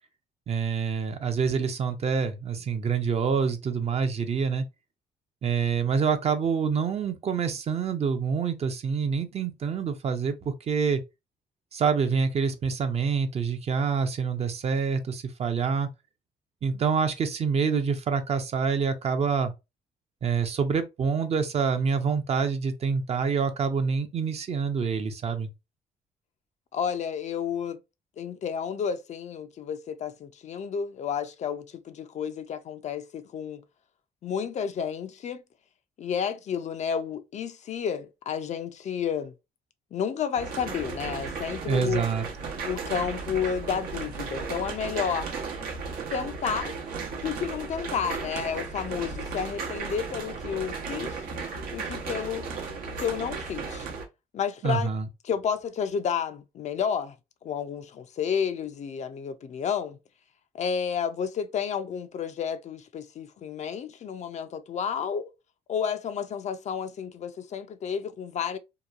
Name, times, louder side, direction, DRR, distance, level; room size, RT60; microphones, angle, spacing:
voice 1, 0.5-4.6 5.4-11.0 11.7-15.9 16.6-19.5 20.2-25.5 41.7-42.2 54.6-55.1, right 5 dB, 45° right, 0.5 m, -26 dB
voice 2, 26.7-27.8 28.2-33.6 34.2-35.4 36.0-39.3 39.9-42.0 42.6-45.3 46.1-46.7 47.2-51.2 51.7-52.5 53.0-53.9 54.3-54.9 55.2-57.2 57.4-60.0 60.5-65.3 65.7-68.6, left 7 dB, 50° left, 0.4 m, -31 dB
sound 1, 40.3-54.0, right 4 dB, 80° right, 0.7 m, -35 dB
2.9 x 2.2 x 2.4 m
cardioid pair, 80°, 15 cm